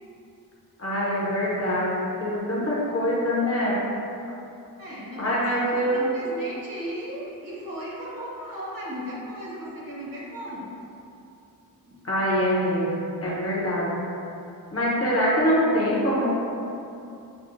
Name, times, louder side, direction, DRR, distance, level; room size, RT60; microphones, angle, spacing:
voice 1, 0.8-3.8 5.2-6.1 12.0-14.0 14.7-16.3, equal, 40° left, -6 dB, 0.7 m, -24 dB
voice 2, 4.8-10.7 11.8-12.1, equal, 65° right, -7 dB, 1.1 m, -36 dB
5.9 x 2.1 x 2.5 m, 2.7 s
wide cardioid pair, 165°, 36 cm